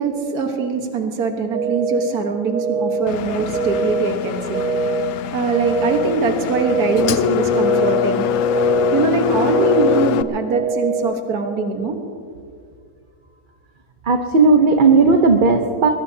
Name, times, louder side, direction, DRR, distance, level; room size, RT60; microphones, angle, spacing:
voice 1, 0.0-8.3 8.9-12.0, right 4 dB, 80° right, 3 dB, 1.8 m, -22 dB
sound 1, 1.5-2.0 2.5-3.0 3.5-4.0 4.5-5.0 5.5-6.0 6.5-7.0 7.5-8.0 8.5-9.0 9.5-10.0 10.5-11.0, right 4 dB, 60° right, 1.5 m, -22 dB
Engine, 3.1-10.2, left 9 dB, 75° left, 1.0 m, -23 dB
voice 2, 14.1-15.9, right 4 dB, 40° right, 4 dB, 0.9 m, -14 dB
23.0 x 21.5 x 2.8 m, 2.2 s
omnidirectional pair, 1.6 m